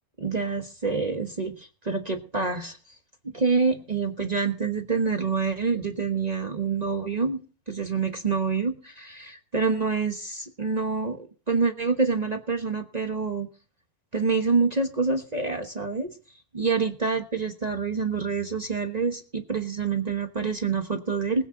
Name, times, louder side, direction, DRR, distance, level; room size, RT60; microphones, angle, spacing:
voice 1, 0.2-2.8 3.2-7.4 7.7-13.5 14.1-16.1 16.5-21.5, right 4 dB, 30° right, 5 dB, 1.2 m, -27 dB
20.5 x 9.1 x 4.0 m, 0.37 s
omnidirectional pair, 1.6 m